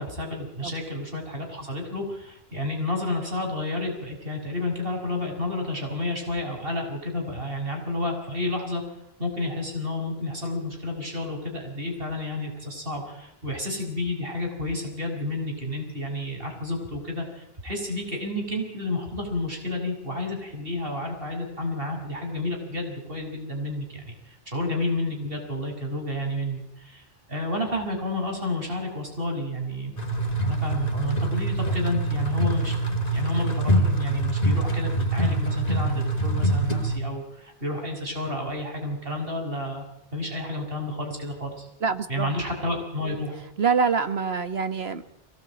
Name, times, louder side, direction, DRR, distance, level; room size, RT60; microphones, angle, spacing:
voice 1, 0.0-29.9 30.4-32.7 33.1-39.8 40.1-41.7 42.1-43.4, left 2 dB, 65° right, 2 dB, 6.7 m, -31 dB
sound 1, 30.0-37.0, right 2 dB, 40° left, 2.7 m, -25 dB
voice 2, 41.8-42.3 43.6-45.0, right 5 dB, 85° right, 10 dB, 2.0 m, -25 dB
23.5 x 18.5 x 8.8 m, 0.82 s
omnidirectional pair, 1.0 m